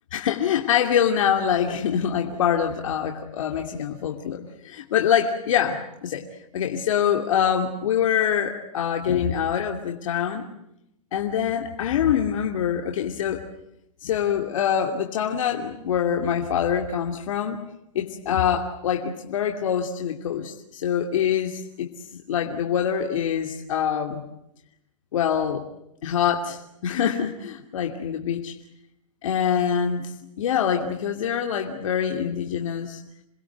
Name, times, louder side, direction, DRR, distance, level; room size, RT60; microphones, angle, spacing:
voice 1, 0.1-6.2 6.5-10.5 11.1-13.4 14.0-17.6 17.9-24.3 25.1-25.6 26.0-28.5 29.2-33.0, left 8 dB, 75° left, 3 dB, 2.8 m, -25 dB
28.5 x 21.0 x 9.3 m, 0.80 s
supercardioid pair, 155°, 17 cm